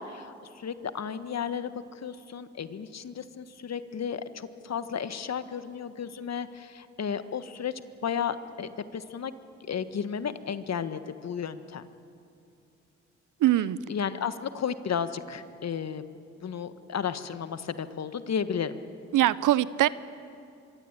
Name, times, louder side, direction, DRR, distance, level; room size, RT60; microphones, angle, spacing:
voice 1, 0.0-1.7 2.0-7.7 8.0-9.3 9.7-11.9 13.9-16.0 16.4-18.8, left 7 dB, 55° left, 11 dB, 1.5 m, -33 dB
voice 2, 13.4-13.8 19.1-19.9, right 14 dB, 75° right, 18 dB, 0.8 m, -22 dB
24.5 x 23.0 x 9.0 m, 2.5 s
supercardioid pair, 50°, 32 cm